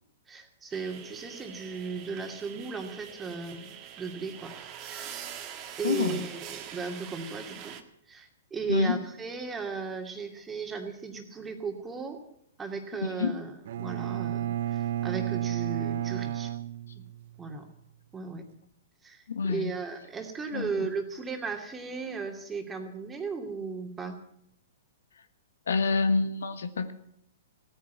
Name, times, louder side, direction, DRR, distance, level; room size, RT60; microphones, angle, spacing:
voice 1, 0.3-4.5 4.9-5.3 5.8-7.8 8.1-12.2 12.6-16.5 17.4-17.7 18.1-18.4 19.0-24.2, right 4 dB, 15° right, 4 dB, 2.5 m, -36 dB
sound 1, 0.7-7.8, right 9 dB, 35° right, 1.7 m, -44 dB
voice 2, 5.8-6.2 8.7-9.0 13.0-13.3 19.3-19.7 20.5-20.9 25.7-26.9, left 4 dB, 75° left, 10 dB, 1.4 m, -27 dB
Bowed string instrument, 13.7-17.5, right 12 dB, 60° right, 0.6 m, -32 dB
16.0 x 10.0 x 8.3 m, 0.72 s
hypercardioid pair, 120°, 0 cm